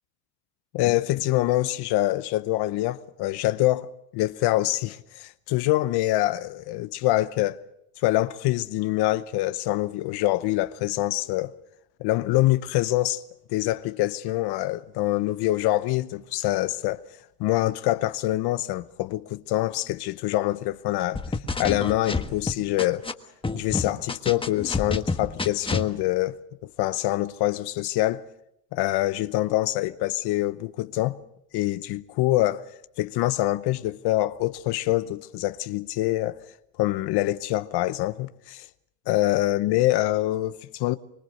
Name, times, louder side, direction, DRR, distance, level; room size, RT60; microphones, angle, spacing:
voice 1, 0.7-7.6 8.0-11.5 12.0-13.2 13.5-17.0 17.4-21.2 21.6-23.1 23.5-26.4 26.8-28.2 28.7-31.2 31.5-32.6 33.0-36.4 36.8-38.7 39.1-41.0, left 16 dB, 60° left, 0.9 m, -25 dB
sound 1, 21.1-23.1 23.4-25.9, left 3 dB, 10° left, 1.5 m, -28 dB
24.5 x 23.0 x 6.6 m
supercardioid pair, 110°, 45 cm